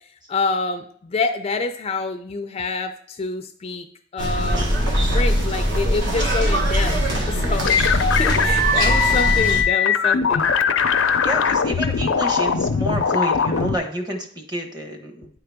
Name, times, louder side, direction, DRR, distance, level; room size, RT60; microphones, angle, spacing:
voice 1, 0.3-3.9 4.1-4.8 5.1-7.0 7.3-10.5, left 3 dB, 30° left, 7 dB, 0.3 m, -27 dB
sound 1, 4.2-9.6, equal, 65° right, 1.2 m, -21 dB
sound 2, 7.6-13.8, left 6 dB, 90° left, 0.5 m, -20 dB
voice 2, 11.2-15.3, equal, 20° right, 4 dB, 1.0 m, -29 dB
9.3 x 3.8 x 3.5 m, 0.62 s
head